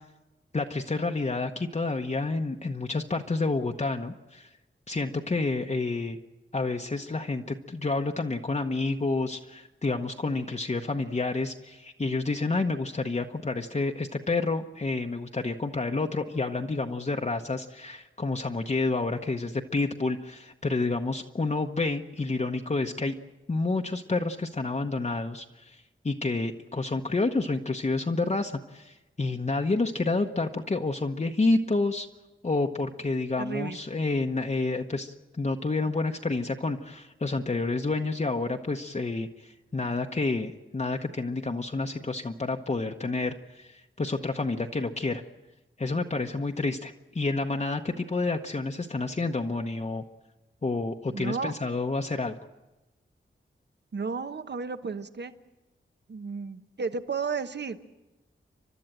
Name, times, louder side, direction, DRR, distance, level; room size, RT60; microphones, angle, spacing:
voice 1, 0.5-4.5 4.9-6.2 6.5-23.1 23.5-32.1 32.4-45.2 45.8-50.0 50.6-52.4, left 3 dB, 35° left, 3 dB, 1.0 m, -29 dB
voice 2, 33.4-33.8 51.1-51.5 53.9-55.3 56.1-57.8, right 5 dB, 55° right, 11 dB, 1.1 m, -33 dB
29.5 x 12.0 x 9.0 m, 1.1 s
wide cardioid pair, 95°, 21 cm